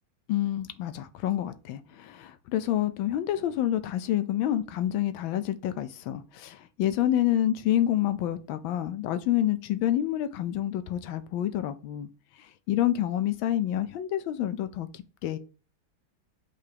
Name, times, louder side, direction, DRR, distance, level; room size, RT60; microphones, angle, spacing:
voice 1, 0.3-12.1 12.7-15.4, left 12 dB, 80° left, 1.4 m, -28 dB
6.9 x 6.8 x 2.8 m
omnidirectional pair, 2.2 m